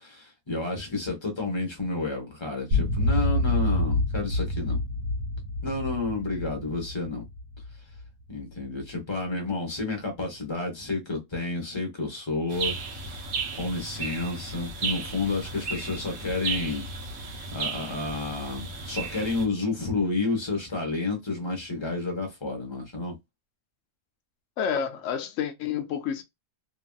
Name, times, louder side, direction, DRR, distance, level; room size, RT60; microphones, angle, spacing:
voice 1, 0.0-4.8 5.6-7.3 8.3-12.9 13.5-16.9 17.5-23.1, left 3 dB, 20° left, 1.0 m, -30 dB
sound 1, 2.7-8.1, left 1 dB, 60° right, 1.2 m, -27 dB
sound 2, 12.5-19.4, right 4 dB, 85° right, 1.3 m, -34 dB
voice 2, 24.6-26.2, left 8 dB, 70° left, 0.9 m, -29 dB
3.1 x 2.6 x 2.2 m
omnidirectional pair, 1.4 m